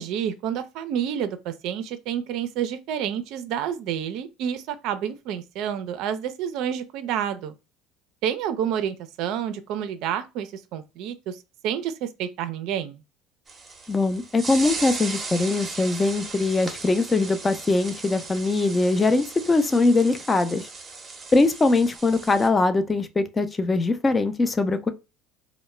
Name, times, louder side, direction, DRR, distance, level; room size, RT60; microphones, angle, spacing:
voice 1, 0.0-7.5 8.2-13.0, right 9 dB, 65° right, 0.4 m, -29 dB
sound 1, 13.5-22.5, right 3 dB, 25° right, 0.6 m, -37 dB
voice 2, 13.9-20.7 21.3-24.9, left 3 dB, 20° left, 0.4 m, -22 dB
2.2 x 2.0 x 3.0 m
supercardioid pair, 90°, 0 cm